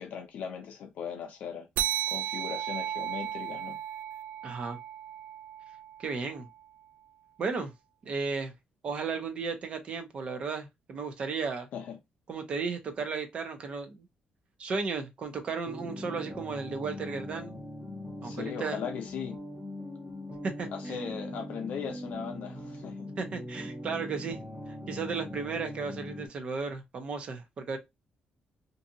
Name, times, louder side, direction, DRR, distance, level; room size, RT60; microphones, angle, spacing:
voice 1, 0.0-1.7 2.1-3.8 11.7-12.0 18.2-19.4 20.7-23.1, left 7 dB, 60° left, 0.5 m, -38 dB
sound 1, 1.8-6.7, right 12 dB, 75° right, 0.3 m, -35 dB
voice 2, 4.4-4.8 6.0-6.5 7.4-7.7 8.0-8.5 8.8-11.7 12.3-14.1 14.6-17.6 18.2-18.8 20.4-20.7 23.2-24.4 24.9-27.8, right 5 dB, 40° right, 0.6 m, -34 dB
sound 2, 15.6-26.3, left 1 dB, 5° right, 1.0 m, -41 dB
2.6 x 2.4 x 2.7 m
cardioid pair, 175°, 3 cm